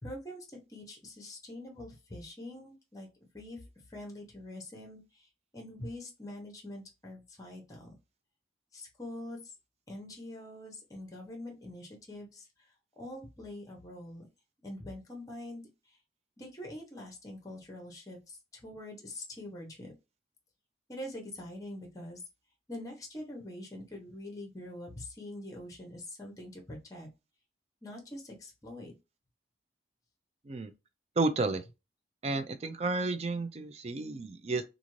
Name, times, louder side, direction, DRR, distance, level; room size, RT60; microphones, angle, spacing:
voice 1, 0.0-3.1 3.3-3.6 3.9-5.3 5.5-7.9 8.7-9.5 9.9-14.2 14.6-15.7 16.4-19.9 20.9-22.2 22.7-27.1 27.8-28.9, left 1 dB, 20° left, 0.8 m, -44 dB
voice 2, 31.2-31.6 32.2-34.6, right 3 dB, 35° right, 0.4 m, -31 dB
2.5 x 2.5 x 3.0 m
head